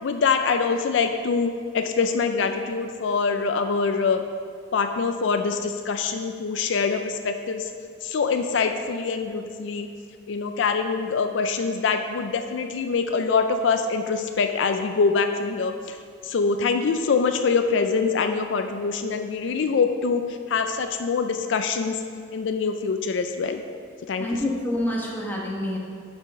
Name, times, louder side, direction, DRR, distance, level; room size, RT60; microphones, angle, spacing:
voice 1, 0.0-4.2 4.7-7.7 8.0-9.9 10.3-16.0 16.2-22.0 22.3-23.6 24.1-24.3, left 5 dB, 75° left, 7 dB, 0.4 m, -24 dB
voice 2, 24.2-25.8, left 1 dB, 10° left, -3 dB, 1.1 m, -27 dB
7.8 x 4.5 x 5.2 m, 2.1 s
head